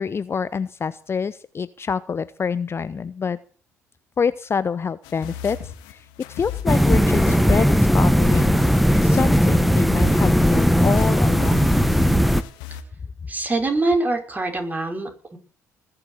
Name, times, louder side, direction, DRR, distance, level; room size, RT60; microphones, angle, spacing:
voice 1, 0.0-3.4 4.2-11.8, left 6 dB, 35° left, 16 dB, 0.8 m, -27 dB
sound 1, 5.0-12.8, left 11 dB, 70° left, 2.1 m, -35 dB
sound 2, 6.7-12.4, equal, ahead, 1.2 m, -17 dB
voice 2, 13.3-15.4, right 2 dB, 20° right, 3 dB, 5.6 m, -24 dB
20.0 x 6.9 x 8.3 m, 0.42 s
hypercardioid pair, 55°, 8 cm